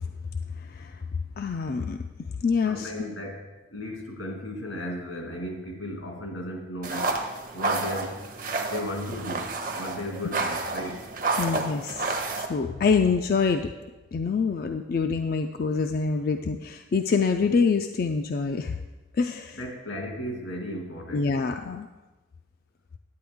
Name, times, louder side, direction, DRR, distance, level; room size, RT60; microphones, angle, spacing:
voice 1, 1.4-2.0 2.4-2.9 11.4-13.6 14.1-18.7 19.2-19.6 21.1-21.9, left 5 dB, 50° left, 6 dB, 0.3 m, -25 dB
voice 2, 2.6-7.2 7.5-8.2 8.7-11.1 19.5-21.3, left 1 dB, 85° left, 1 dB, 2.1 m, -35 dB
sound 1, 6.8-12.5, right 3 dB, 45° right, 0.7 m, -30 dB
10.5 x 8.4 x 3.5 m, 1.2 s
head